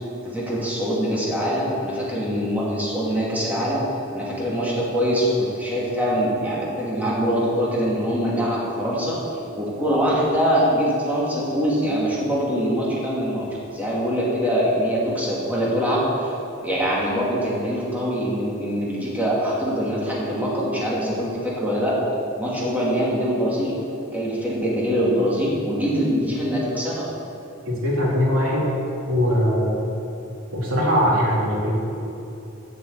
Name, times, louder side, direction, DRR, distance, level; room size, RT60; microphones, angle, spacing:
voice 1, 0.2-3.8 4.1-9.2 9.5-13.4 13.7-16.3 16.6-21.9 22.4-23.8 24.1-27.1, equal, 10° right, -6 dB, 2.5 m, -23 dB
voice 2, 27.7-28.7 29.1-29.8 30.5-31.7, equal, 90° right, -4 dB, 3.0 m, -21 dB
9.8 x 7.6 x 8.0 m, 2.8 s
head